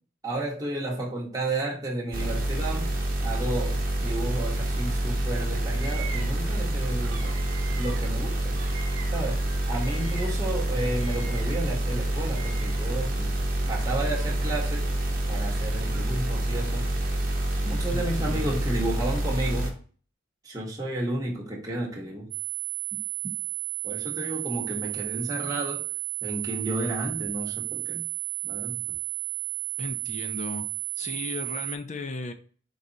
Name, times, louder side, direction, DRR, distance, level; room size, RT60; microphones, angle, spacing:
voice 1, 0.2-3.0 3.2-7.3 7.8-8.7 9.1-13.3 13.7-14.9 15.3-16.9 17.6-19.8 20.4-22.3 22.9-23.0 23.8-25.8 26.2-28.1 28.4-28.8, right 1 dB, 15° right, -3 dB, 1.0 m, -32 dB
sound 1, 2.1-19.7, right 1 dB, 45° right, 1.1 m, -27 dB
Bird vocalization bird call bird song, 4.3-5.1 5.4-10.5 10.7-13.1 13.6-14.6 15.3-16.4, right 5 dB, 80° right, 0.8 m, -45 dB
voice 2, 17.9-18.6 29.8-30.7 31.0-32.3, left 3 dB, 35° left, 8 dB, 0.5 m, -36 dB
sound 2, 22.3-31.8, right 29 dB, 65° right, 0.3 m, -33 dB
4.7 x 4.0 x 2.7 m, 0.42 s
head